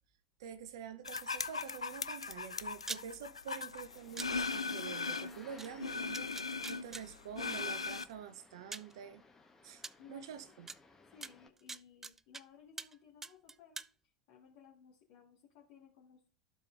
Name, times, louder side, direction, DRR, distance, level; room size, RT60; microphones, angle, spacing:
voice 1, 0.4-9.2 9.6-9.8 10.1-10.7, right 8 dB, 60° right, 0.8 m, -47 dB
sound 1, 1.0-5.4 5.8-8.0, left 4 dB, 85° left, 0.3 m, -39 dB
sound 2, 2.9-3.0 4.2-4.3 5.6-5.7 6.1-7.0 8.1-8.2 8.7-8.9 9.8-9.9 10.7-10.8 11.2-12.4 12.8-13.0 13.2-13.9, right 3 dB, 15° right, 0.3 m, -43 dB
sound 3, 3.8-11.5, left 3 dB, 15° left, 1.2 m, -61 dB
voice 2, 10.0-10.3 11.1-13.8 14.3-16.3, left 7 dB, 55° left, 1.8 m, -59 dB
14.0 x 4.9 x 2.6 m
figure-of-eight pair, 80°, 3 cm